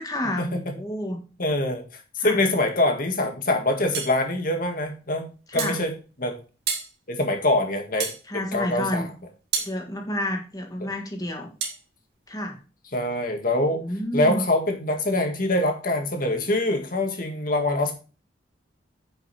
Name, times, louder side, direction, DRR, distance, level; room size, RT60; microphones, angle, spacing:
voice 1, 0.0-1.2 2.2-2.4 5.5-5.8 8.3-9.1 9.6-11.5 12.3-12.6 13.8-14.4, left 1 dB, 20° left, 3 dB, 1.7 m, -29 dB
voice 2, 1.4-5.9 6.2-6.4 7.1-9.1 10.8-10.9 12.9-13.8 14.1-17.9, left 1 dB, 50° left, 4 dB, 2.0 m, -24 dB
sound 1, 3.9-4.2 5.6-5.8 6.7-6.9 8.0-8.2 9.5-9.7 11.6-11.8, right 6 dB, 60° right, 2.4 m, -28 dB
9.6 x 5.7 x 4.3 m, 0.34 s
head